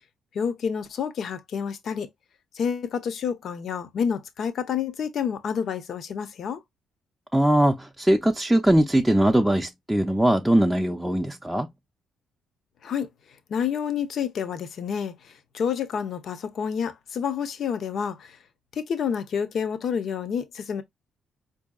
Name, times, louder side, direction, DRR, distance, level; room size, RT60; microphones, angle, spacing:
voice 1, 0.3-2.1 2.6-6.6 12.8-13.1 13.5-15.1 15.5-18.3 18.8-20.8, left 7 dB, 60° left, 0.7 m, -28 dB
voice 2, 7.3-11.7, right 1 dB, 5° right, 0.5 m, -21 dB
4.4 x 2.7 x 2.3 m
cardioid pair, 90°, 0 cm